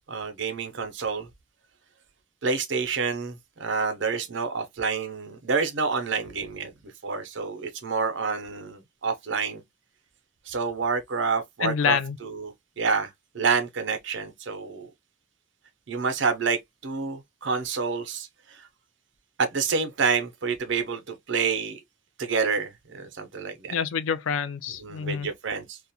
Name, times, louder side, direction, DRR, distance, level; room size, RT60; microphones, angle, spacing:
voice 1, 0.1-1.3 2.4-6.7 7.0-9.6 10.5-14.9 15.9-18.7 19.4-21.8 22.2-23.7 24.8-25.8, right 5 dB, 65° right, 0.6 m, -28 dB
voice 2, 11.6-12.2 23.7-25.3, left 6 dB, 80° left, 0.4 m, -27 dB
2.4 x 2.1 x 2.6 m
head